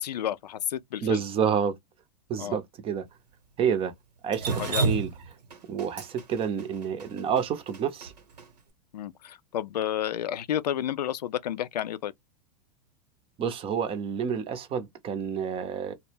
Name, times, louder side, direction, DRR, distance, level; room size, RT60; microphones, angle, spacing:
voice 1, 0.0-1.2 2.4-2.6 4.6-4.9 8.9-12.1, left 11 dB, 85° left, 0.4 m, -31 dB
voice 2, 1.0-1.8 2.3-3.1 3.6-3.9 4.2-5.1 5.7-8.1 13.4-15.9, right 7 dB, 25° right, 0.6 m, -29 dB
Drip, 4.3-8.5, right 4 dB, 80° right, 0.9 m, -30 dB
2.1 x 2.1 x 3.2 m
hypercardioid pair, 105°, 20 cm